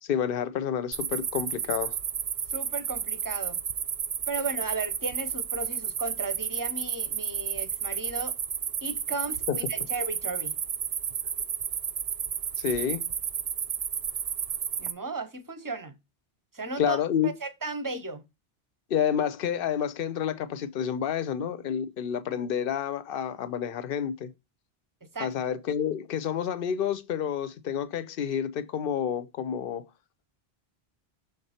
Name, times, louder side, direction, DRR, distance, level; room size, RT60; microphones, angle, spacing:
voice 1, 0.0-2.0 9.5-9.6 12.6-13.1 16.8-17.3 18.9-24.3 25.2-29.8, left 8 dB, 65° left, 0.8 m, -29 dB
sound 1, 0.9-14.9, right 7 dB, 50° right, 0.4 m, -32 dB
voice 2, 2.5-3.6 4.3-8.3 8.8-10.5 14.8-15.9 16.5-17.0 17.2-18.2 25.0-25.3, right 3 dB, 20° right, 0.7 m, -35 dB
6.6 x 3.9 x 4.2 m
omnidirectional pair, 1.1 m